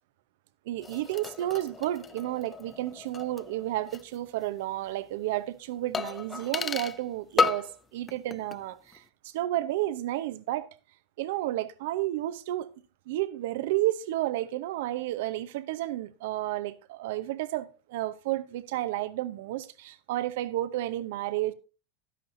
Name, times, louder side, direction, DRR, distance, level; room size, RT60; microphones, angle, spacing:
voice 1, 0.7-10.7 11.2-12.7 13.1-21.5, right 15 dB, 65° right, 0.8 m, -31 dB
sound 1, 0.8-4.2 4.4-4.5 5.9-7.0 7.4-7.8 8.1-8.6 8.9-9.0, left 5 dB, 25° left, 0.5 m, -33 dB
12.0 x 11.0 x 2.6 m
hypercardioid pair, 85°, 0 cm